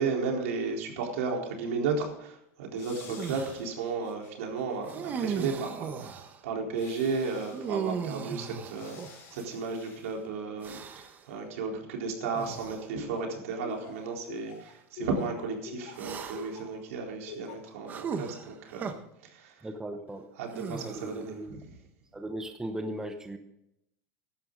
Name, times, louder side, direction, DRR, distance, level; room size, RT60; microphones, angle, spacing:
voice 1, 0.0-19.6 20.4-21.3, right 4 dB, 80° right, 0 dB, 4.1 m, -34 dB
sound 1, 2.7-4.8 5.1-5.2 6.7-7.8 8.7-9.4 9.7-10.0, left 5 dB, 35° left, 5.3 m, -51 dB
sound 2, 3.2-3.6 4.9-6.4 7.5-9.9 10.6-11.2 12.3-12.9 13.7-13.8 15.9-16.6 17.9-18.9 20.5-21.3, right 6 dB, 25° right, 1.2 m, -37 dB
Laughter, 12.9-16.8 17.3-17.7, left 7 dB, 65° left, 3.9 m, -43 dB
voice 2, 19.6-20.3 20.6-21.6 22.1-23.4, right 1 dB, 5° right, 6 dB, 0.9 m, -38 dB
15.5 x 11.5 x 4.0 m, 0.81 s
supercardioid pair, 155°, 7 cm